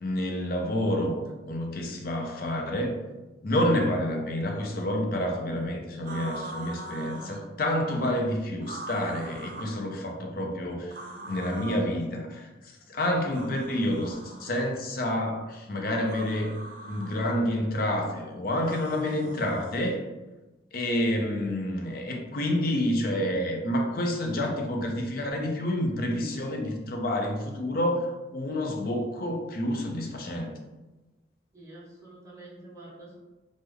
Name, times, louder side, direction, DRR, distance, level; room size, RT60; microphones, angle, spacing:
voice 1, 0.0-3.0 3.4-11.0 11.3-16.5 16.9-20.0 20.7-28.1 28.3-30.5, left 1 dB, 55° left, 2 dB, 0.5 m, -28 dB
sound 1, 6.0-7.4 8.6-9.8 10.9-11.9 13.3-14.7 16.0-17.2 18.6-19.9, right 2 dB, 50° right, 0.5 m, -41 dB
voice 2, 31.5-33.2, right 2 dB, 15° right, -6 dB, 0.8 m, -47 dB
3.3 x 2.0 x 3.4 m, 1.1 s
head